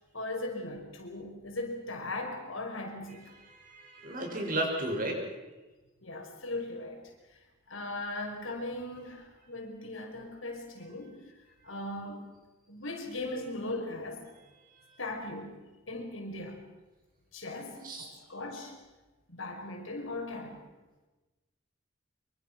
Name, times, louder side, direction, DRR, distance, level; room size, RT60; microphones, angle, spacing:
voice 1, 0.1-3.3 6.0-7.1 7.7-11.2 11.6-12.3 12.7-14.2 15.0-15.6 15.9-16.6 17.3-18.8 19.3-20.6, left 2 dB, 90° left, 2 dB, 5.6 m, -38 dB
voice 2, 3.5-5.2 17.8-18.0, right 1 dB, 45° right, 2 dB, 6.5 m, -33 dB
26.0 x 24.0 x 6.3 m, 1.1 s
head